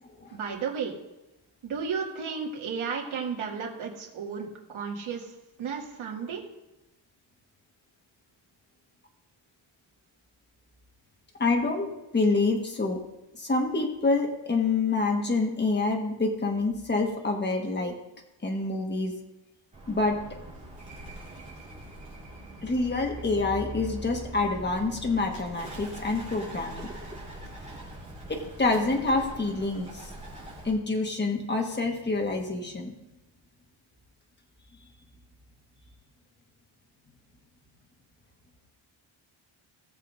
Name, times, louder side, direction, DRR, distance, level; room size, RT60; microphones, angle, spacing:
voice 1, 0.3-0.9 1.6-5.3 5.6-6.4, right 6 dB, 80° right, -2 dB, 2.2 m, -33 dB
voice 2, 11.4-13.0 13.3-17.9 18.4-19.1 19.9-20.1 22.6-26.9 28.3-30.1 30.6-32.9, left 3 dB, 20° left, 1 dB, 1.4 m, -27 dB
Bird, 19.7-30.7, right 1 dB, 15° right, 3.3 m, -42 dB
19.0 x 6.8 x 2.6 m, 0.99 s
wide cardioid pair, 150°, 47 cm